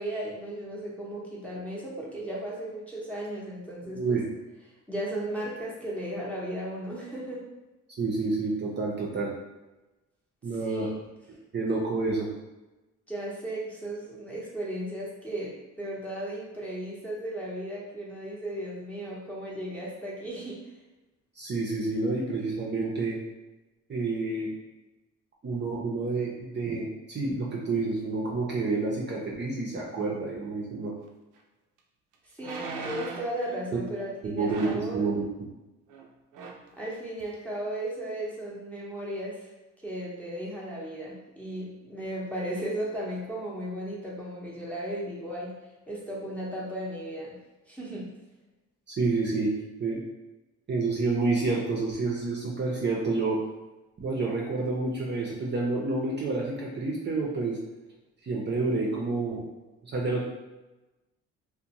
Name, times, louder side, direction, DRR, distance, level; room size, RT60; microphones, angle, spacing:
voice 1, 0.0-4.2 4.9-7.4 10.6-11.0 13.1-20.6 32.3-35.1 36.8-39.5 39.8-45.5 45.9-47.4 47.7-48.1, right 1 dB, 5° left, -7 dB, 0.7 m, -35 dB
voice 2, 3.9-4.3 8.0-9.3 10.4-10.9 11.5-12.3 21.4-23.2 23.9-24.5 25.4-30.9 33.7-33.8 34.2-35.5 48.9-49.5 49.8-50.0 50.7-53.4 54.0-57.6 58.2-59.5 59.8-60.2, right 3 dB, 35° right, -3 dB, 0.5 m, -29 dB
sound 1, 31.4-31.5 32.4-33.4 34.5-34.9 35.9-36.1 36.3-36.7 37.2-37.3, right 4 dB, 85° right, 0.5 m, -38 dB
2.5 x 2.1 x 2.8 m, 1.1 s
cardioid pair, 90°, 30 cm